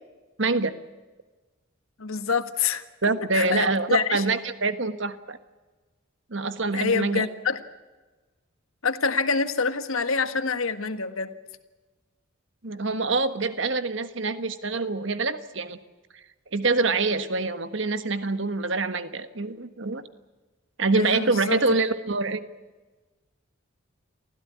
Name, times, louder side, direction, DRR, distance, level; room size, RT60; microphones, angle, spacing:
voice 1, 0.4-0.7 3.0-5.4 6.3-7.2 12.6-15.8 16.5-20.0 20.8-22.4, right 3 dB, 60° right, 11 dB, 1.4 m, -25 dB
voice 2, 2.0-2.8 3.3-4.2 6.7-7.6 8.8-11.4 20.9-21.6, left 5 dB, 90° left, 10 dB, 1.6 m, -26 dB
24.5 x 16.0 x 9.5 m, 1.2 s
head